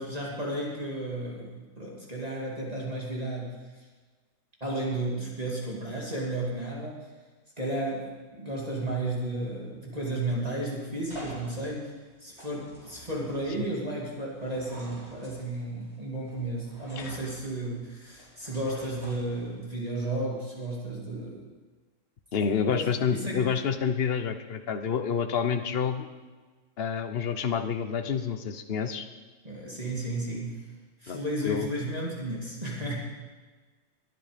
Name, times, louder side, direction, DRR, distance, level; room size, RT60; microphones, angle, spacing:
voice 1, 0.0-3.6 4.6-7.1 7.6-11.9 12.2-21.5 22.4-23.5 29.4-30.7 31.0-33.0, right 1 dB, 30° right, -4 dB, 2.8 m, -33 dB
sound 1, 10.8-19.8, right 1 dB, 55° right, 6.8 m, -49 dB
voice 2, 22.3-26.1 26.8-29.1 31.1-31.7, left 6 dB, 50° left, 7 dB, 1.2 m, -28 dB
22.0 x 10.0 x 5.2 m, 1.4 s
omnidirectional pair, 1.4 m